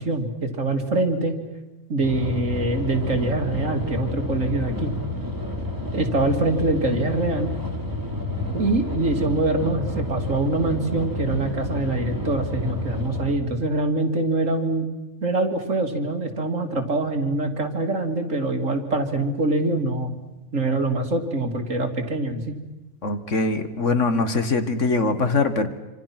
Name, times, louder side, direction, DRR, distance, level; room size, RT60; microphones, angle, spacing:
voice 1, 0.0-1.4 1.9-5.0 5.9-7.5 8.5-14.9 15.2-20.1 20.5-22.6, right 2 dB, 60° right, 5 dB, 2.8 m, -24 dB
sound 1, 2.0-13.4, left 2 dB, 15° right, 3.0 m, -30 dB
voice 2, 23.0-25.7, left 3 dB, 55° left, 9 dB, 2.0 m, -22 dB
26.5 x 26.0 x 6.0 m, 1.1 s
omnidirectional pair, 1.5 m